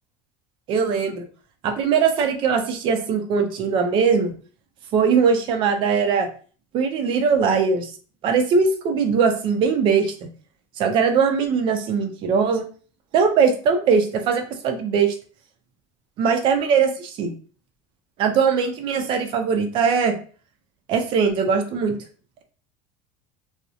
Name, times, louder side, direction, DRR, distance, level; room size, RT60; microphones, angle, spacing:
voice 1, 0.7-1.3 1.6-4.3 4.9-6.3 6.7-7.9 8.2-10.1 10.8-12.6 13.1-15.2 16.2-17.3 18.2-20.2 20.9-22.0, right 6 dB, 40° right, 5 dB, 0.4 m, -20 dB
2.7 x 2.0 x 2.3 m, 0.40 s
cardioid pair, 160°, 13 cm